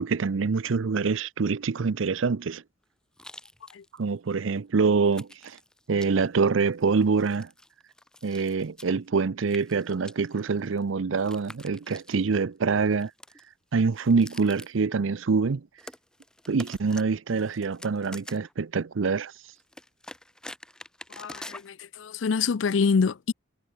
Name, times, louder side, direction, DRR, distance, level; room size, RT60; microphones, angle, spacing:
voice 1, 0.0-2.6 4.0-5.6 5.9-7.5 8.2-13.1 13.7-15.7 16.5-19.3, right 4 dB, 85° right, 0.6 m, -25 dB
sound 1, 3.2-4.0 4.3-4.4 5.0-6.4 6.7-9.0 9.4-12.4 12.8-13.4 13.9-14.8 15.8-17.0 17.3-18.5 19.6-21.7 22.5-22.6, left 1 dB, 5° left, 1.3 m, -46 dB
voice 2, 21.2-23.3, left 5 dB, 80° left, 0.5 m, -26 dB
head